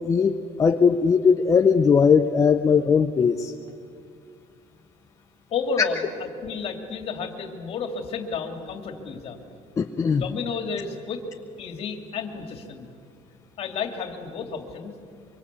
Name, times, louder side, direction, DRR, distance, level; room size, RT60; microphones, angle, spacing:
voice 1, 0.0-3.5 9.8-10.2, left 6 dB, 20° left, 5 dB, 0.6 m, -19 dB
voice 2, 5.5-9.4 10.1-11.2 11.6-12.9 13.6-14.9, left 5 dB, 45° left, 5 dB, 2.6 m, -31 dB
24.5 x 24.5 x 8.3 m, 2.3 s
cardioid pair, 175°, 15 cm